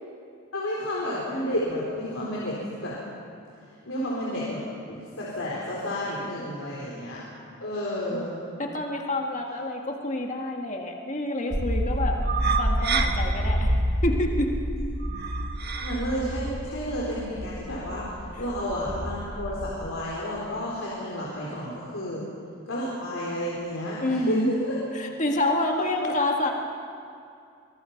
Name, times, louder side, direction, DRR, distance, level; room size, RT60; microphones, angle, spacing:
voice 1, 0.5-2.9 3.9-4.6 4.9-7.2 7.6-8.4 14.7-14.9 15.7-18.0 18.4-22.2 22.7-24.7 25.8-26.1, equal, 75° left, -6 dB, 4.0 m, -31 dB
voice 2, 8.6-12.2 12.6-13.8 14.0-14.5 24.0-24.5 24.9-26.5, left 1 dB, 35° left, 1 dB, 1.7 m, -27 dB
sound 1, 11.5-19.9, right 1 dB, 50° right, 1.5 m, -28 dB
24.5 x 21.5 x 5.8 m, 2.4 s
head